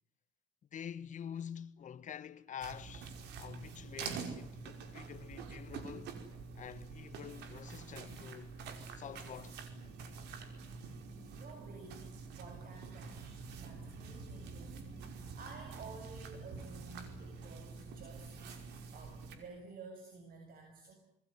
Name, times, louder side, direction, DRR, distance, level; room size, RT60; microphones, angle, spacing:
voice 1, 0.7-6.1 6.5-8.5 8.9-9.6, left 8 dB, 45° left, 1.6 m, -47 dB
sound 1, 2.6-19.4, right 4 dB, 85° right, 5.4 m, -47 dB
voice 2, 11.3-20.9, right 4 dB, 60° right, 7.4 m, -53 dB
27.0 x 21.0 x 9.7 m
cardioid pair, 110°, 17 cm